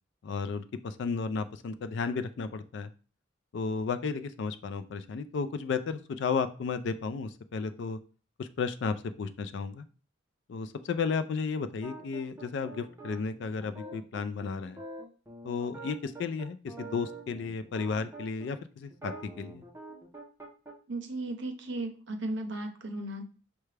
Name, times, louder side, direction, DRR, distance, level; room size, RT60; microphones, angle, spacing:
voice 1, 0.2-2.9 3.5-8.0 8.4-9.8 10.5-14.8 15.4-19.6, left 5 dB, 60° left, 12 dB, 0.3 m, -33 dB
sound 1, 11.8-18.5 18.9-20.7, right 2 dB, 10° right, 0.7 m, -45 dB
voice 2, 20.9-23.3, right 2 dB, 60° right, 5 dB, 0.7 m, -35 dB
5.7 x 2.2 x 3.2 m, 0.37 s
head